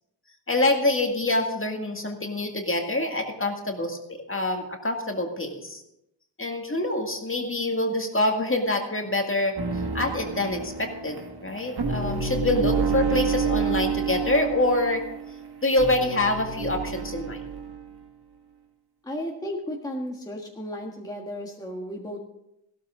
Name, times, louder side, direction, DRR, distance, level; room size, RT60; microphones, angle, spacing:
voice 1, 0.5-5.8 6.4-9.6 9.9-15.0 15.6-17.4, left 2 dB, 25° left, 3 dB, 2.0 m, -26 dB
sound 1, 9.6-17.8, right 5 dB, 55° right, 1.7 m, -29 dB
voice 2, 19.0-22.3, equal, 10° left, -1 dB, 1.6 m, -34 dB
15.0 x 13.0 x 3.7 m, 0.84 s
wide cardioid pair, 90°, 46 cm